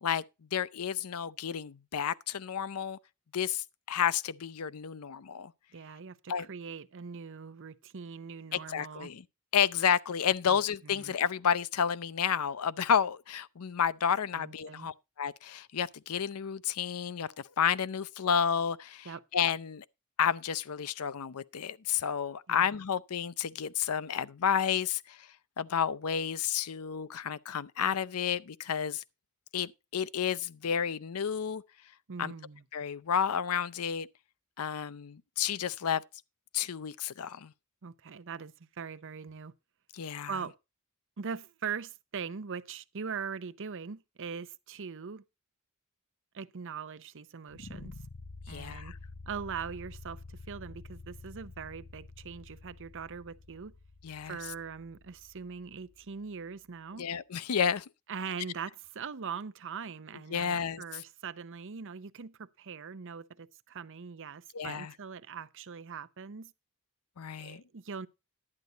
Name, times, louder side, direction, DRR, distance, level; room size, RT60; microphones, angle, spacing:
voice 1, 0.5-3.0 3.3-5.5 6.3-6.5 8.5-9.2 9.5-19.8 20.2-25.3 25.6-29.0 29.5-31.6 32.2-32.3 32.7-34.1 34.6-36.0 36.5-37.5 39.9-40.3 48.5-49.0 54.0-54.4 57.0-57.9 60.3-61.0 64.5-64.9 67.2-67.6, left 8 dB, 85° left, 0.6 m, -31 dB
voice 2, 5.7-9.1 10.5-10.6 10.8-11.1 14.4-14.9 19.0-19.2 22.5-22.7 32.1-32.6 37.8-39.5 40.3-40.5 41.2-45.2 46.3-47.9 48.5-48.9 49.3-53.7 54.2-57.1 58.1-66.5 67.4-68.1, right 6 dB, 60° right, 0.7 m, -41 dB
sound 1, 47.5-56.5, left 3 dB, 55° left, 0.9 m, -49 dB
11.0 x 9.5 x 3.9 m
head